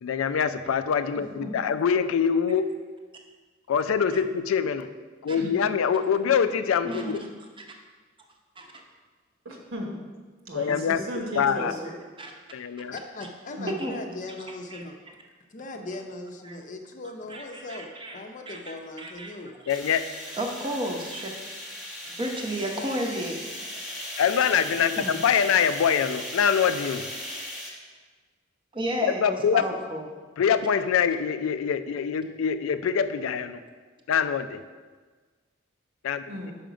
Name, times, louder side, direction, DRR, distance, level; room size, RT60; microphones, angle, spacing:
voice 1, 0.0-2.7 3.7-4.9 5.2-7.2 10.5-11.0 11.3-11.8 12.5-12.9 19.7-20.1 24.2-27.1 29.2-29.6 30.4-33.6 34.1-34.6 36.0-36.2, left 7 dB, 85° left, 11 dB, 0.4 m, -24 dB
voice 2, 1.1-1.5 5.3-5.5 9.4-9.9 10.5-11.9 13.6-13.8 36.3-36.5, equal, 75° right, 0 dB, 1.3 m, -35 dB
voice 3, 12.9-15.0 15.5-19.6 22.0-22.2, left 2 dB, 40° left, 4 dB, 0.6 m, -39 dB
voice 4, 13.7-14.0 14.7-14.8 16.4-16.5 17.3-18.2 18.5-18.6 19.0-19.3 20.4-21.3 22.2-23.4 25.0-25.2 28.7-30.1, right 1 dB, 25° right, 2 dB, 0.8 m, -32 dB
sound 1, 19.7-27.7, left 1 dB, ahead, 1.1 m, -38 dB
5.7 x 5.0 x 5.1 m, 1.4 s
head